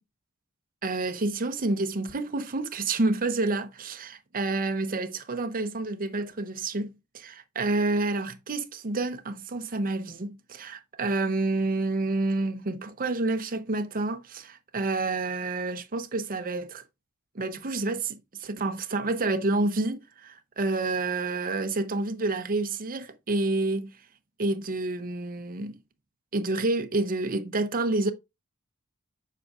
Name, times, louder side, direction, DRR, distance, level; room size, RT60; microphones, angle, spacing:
voice 1, 0.8-16.8 17.3-23.9 24.4-25.7 26.3-28.1, right 2 dB, 40° right, 0.7 m, -29 dB
7.4 x 5.5 x 2.4 m
head